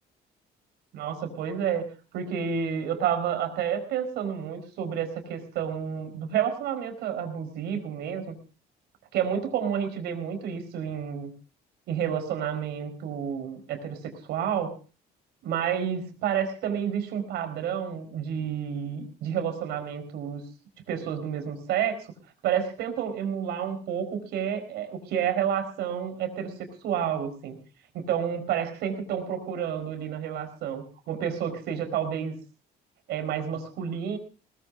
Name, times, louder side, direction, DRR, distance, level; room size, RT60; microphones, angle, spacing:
voice 1, 0.9-1.9 2.1-8.4 9.1-11.3 11.9-14.7 15.4-20.4 20.9-22.1 22.4-27.6 27.9-32.3 33.1-34.2, right 8 dB, 80° right, 8 dB, 4.7 m, -30 dB
21.5 x 19.5 x 2.6 m, 0.34 s
cardioid pair, 110°, 17 cm